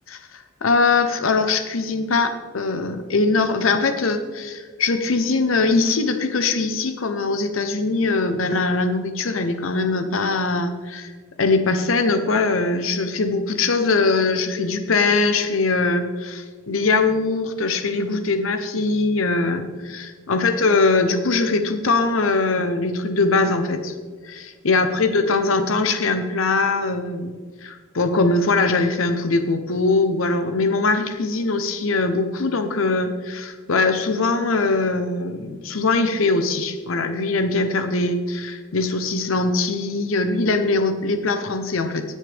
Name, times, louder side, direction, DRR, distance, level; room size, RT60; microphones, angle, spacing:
voice 1, 0.3-11.1 11.4-23.9 24.2-27.3 27.6-42.0, left 3 dB, 85° left, 8 dB, 0.8 m, -21 dB
18.5 x 6.5 x 3.5 m, 1.5 s
head